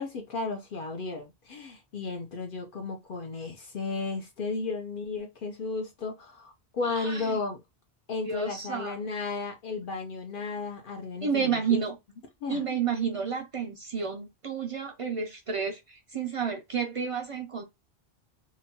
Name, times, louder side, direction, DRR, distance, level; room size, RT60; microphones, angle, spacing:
voice 1, 0.0-7.6 8.1-11.8 12.4-12.6, left 4 dB, 60° left, 0.7 m, -34 dB
voice 2, 6.8-7.4 8.2-9.0 11.2-12.0 12.5-17.6, right 6 dB, 50° right, 0.4 m, -30 dB
2.9 x 2.2 x 2.7 m
omnidirectional pair, 1.0 m